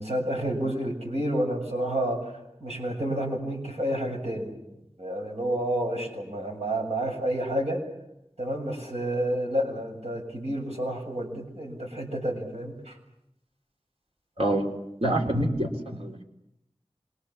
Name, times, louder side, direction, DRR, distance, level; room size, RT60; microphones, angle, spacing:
voice 1, 0.0-2.3 2.6-4.5 5.0-7.8 8.4-13.0, right 1 dB, 85° right, 1 dB, 7.1 m, -29 dB
voice 2, 14.4-14.7 15.0-16.2, right 1 dB, 65° right, 1 dB, 3.9 m, -26 dB
26.5 x 24.5 x 7.3 m, 0.81 s
wide cardioid pair, 45°, 11 cm